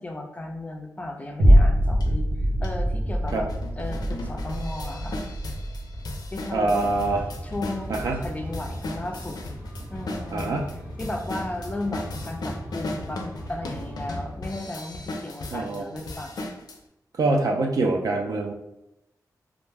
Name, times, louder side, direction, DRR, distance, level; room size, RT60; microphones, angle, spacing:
voice 1, 0.0-2.3 2.6-3.5 3.8-5.2 6.3-7.0 7.4-9.4 9.9-10.6 11.0-13.2 13.5-16.3, left 1 dB, 20° left, 2 dB, 0.3 m, -35 dB
sound 1, 1.4-9.9 10.4-10.5, equal, 80° right, 0.9 m, -24 dB
sound 2, 2.0-2.1 2.6-2.7 3.3-16.8, left 2 dB, 85° left, 0.4 m, -37 dB
voice 2, 6.5-7.2 7.9-8.2 10.3-10.7 15.5-15.8 17.2-18.5, right 2 dB, 65° right, 1 dB, 0.4 m, -24 dB
sound 3, 6.7-14.2, equal, 25° right, 0.6 m, -38 dB
2.4 x 2.1 x 3.3 m, 0.86 s
wide cardioid pair, 160°, 7 cm